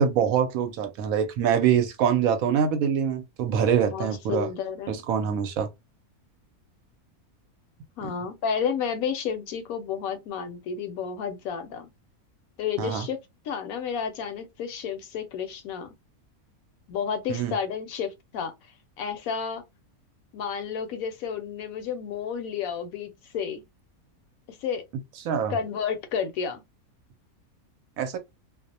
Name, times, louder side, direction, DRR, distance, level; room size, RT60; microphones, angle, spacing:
voice 1, 0.0-4.5 4.9-5.7 8.0-8.1 12.8-13.0 17.3-17.5 25.2-25.5 28.0-28.2, right 8 dB, 75° right, 1.0 m, -24 dB
voice 2, 3.8-5.0 8.0-11.9 12.6-13.2 13.5-15.9 16.9-18.5 19.0-19.6 20.3-23.6 24.5-24.8 25.5-26.6, left 7 dB, 75° left, 1.0 m, -31 dB
2.5 x 2.0 x 2.6 m
omnidirectional pair, 1.6 m